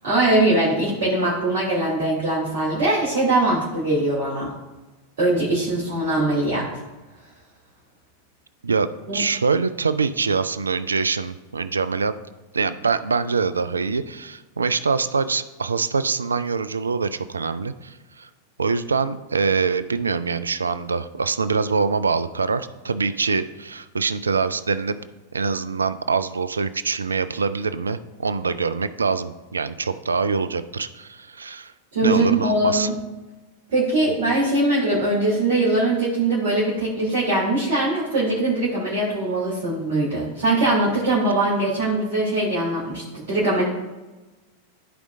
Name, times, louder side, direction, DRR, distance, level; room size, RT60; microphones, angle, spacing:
voice 1, 0.0-4.5 5.2-6.8 9.1-9.2 31.9-32.9 33.7-43.6, right 2 dB, 60° right, -7 dB, 2.7 m, -21 dB
voice 2, 9.1-12.1 12.5-18.3 18.6-25.0 25.3-31.7 32.0-32.9, right 4 dB, 75° right, 14 dB, 0.4 m, -24 dB
14.5 x 4.9 x 2.6 m, 1.1 s
figure-of-eight pair, 90°, 0 cm